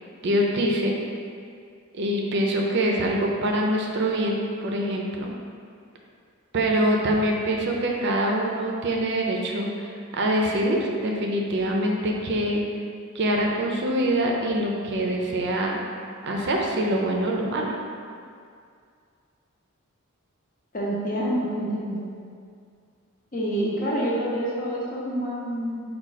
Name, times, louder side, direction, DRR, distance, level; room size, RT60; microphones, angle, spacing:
voice 1, 0.2-1.0 1.9-5.3 6.5-12.6 13.1-15.8 16.2-17.7, right 1 dB, 55° right, 0 dB, 0.5 m, -24 dB
voice 2, 20.7-22.1 23.3-25.8, equal, 40° left, -5 dB, 0.8 m, -27 dB
4.8 x 2.3 x 4.0 m, 2.3 s
head